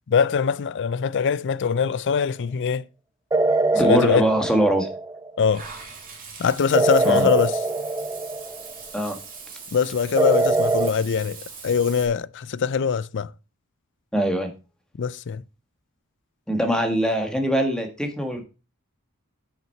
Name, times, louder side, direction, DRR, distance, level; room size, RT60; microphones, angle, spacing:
voice 1, 0.1-2.8 3.8-4.3 5.4-5.6 6.4-7.6 9.7-13.3 15.0-15.4, left 6 dB, 55° left, 0.5 m, -22 dB
sound 1, 3.3-5.4 6.7-8.8 10.2-10.9, right 3 dB, 15° right, 0.4 m, -23 dB
voice 2, 3.7-4.9 7.0-7.3 8.9-9.2 14.1-14.5 16.5-18.5, right 1 dB, 5° left, 1.6 m, -22 dB
Water / Bathtub (filling or washing), 5.5-12.0, right 5 dB, 40° right, 2.8 m, -41 dB
9.2 x 6.0 x 4.4 m
head